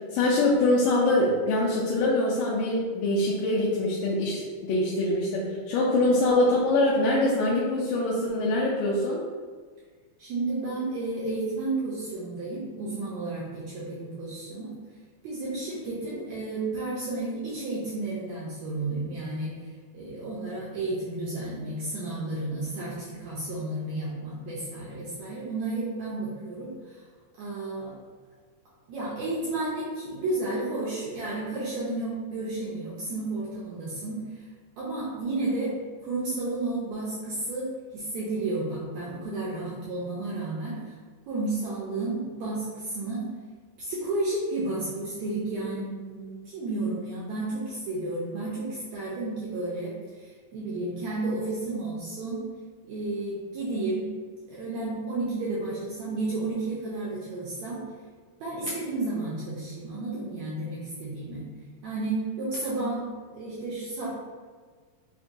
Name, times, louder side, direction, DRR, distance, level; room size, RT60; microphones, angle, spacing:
voice 1, 0.0-9.2, left 2 dB, 80° left, -6 dB, 2.1 m, -24 dB
voice 2, 10.2-14.7 15.2-19.5 19.9-26.7 27.4-27.9 28.9-34.2 34.8-37.7 37.9-40.8 41.3-43.3 43.8-49.9 50.5-52.4 52.8-54.1 54.5-57.8 58.4-61.5 61.8-63.1 63.3-64.1, right 2 dB, 80° right, -7 dB, 1.6 m, -32 dB
5.7 x 2.2 x 2.6 m, 1.6 s
omnidirectional pair, 3.9 m